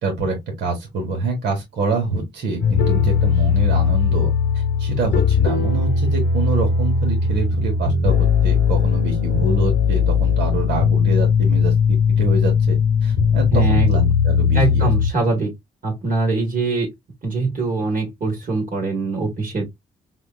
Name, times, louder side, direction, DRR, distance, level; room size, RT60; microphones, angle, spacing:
voice 1, 0.0-14.9, right 3 dB, 70° right, 1.3 m, -26 dB
sound 1, 2.6-15.1, left 6 dB, 65° left, 0.9 m, -18 dB
voice 2, 13.5-14.0 14.5-15.5 15.8-16.9 17.2-19.7, right 3 dB, 50° right, 1.4 m, -22 dB
4.3 x 2.3 x 2.3 m
supercardioid pair, 50°, 18 cm